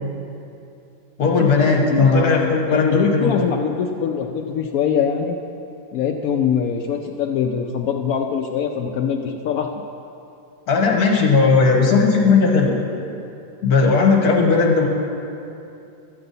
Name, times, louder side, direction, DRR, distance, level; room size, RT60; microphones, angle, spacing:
voice 1, 1.2-3.5 10.7-12.7 13.6-14.9, left 4 dB, 55° left, 0 dB, 1.5 m, -16 dB
voice 2, 1.8-5.4 5.9-9.7, left 7 dB, 85° left, 3 dB, 0.7 m, -23 dB
13.0 x 7.8 x 4.0 m, 2.7 s
omnidirectional pair, 2.1 m